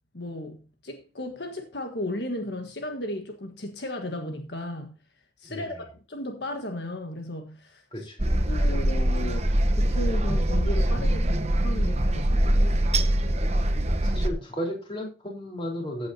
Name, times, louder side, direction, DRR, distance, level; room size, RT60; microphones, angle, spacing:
voice 1, 0.1-5.0 5.4-8.1 8.5-9.5 9.8-12.6, left 1 dB, 65° left, 1.6 m, -35 dB
voice 2, 7.9-8.4 13.9-16.1, equal, 30° left, 4.1 m, -34 dB
sound 1, 8.2-14.3, right 1 dB, 35° right, 1.1 m, -23 dB
15.5 x 8.7 x 2.9 m
head